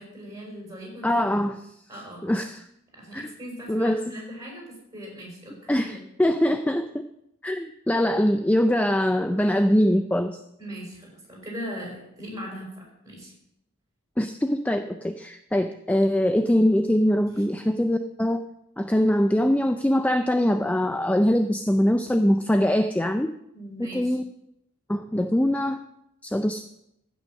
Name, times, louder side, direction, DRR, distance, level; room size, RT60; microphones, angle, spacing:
voice 1, 0.0-1.2 1.9-2.2 2.9-6.0 10.6-13.3 23.5-24.2, equal, 15° right, -1 dB, 4.9 m, -39 dB
voice 2, 1.0-1.6 2.2-2.6 3.1-3.3 3.7-4.0 5.7-7.0 7.4-10.4 14.2-18.4 18.8-23.3 23.8-24.2 24.9-25.8 26.2-26.6, equal, 5° left, 8 dB, 0.4 m, -23 dB
15.5 x 6.2 x 6.4 m, 0.81 s
head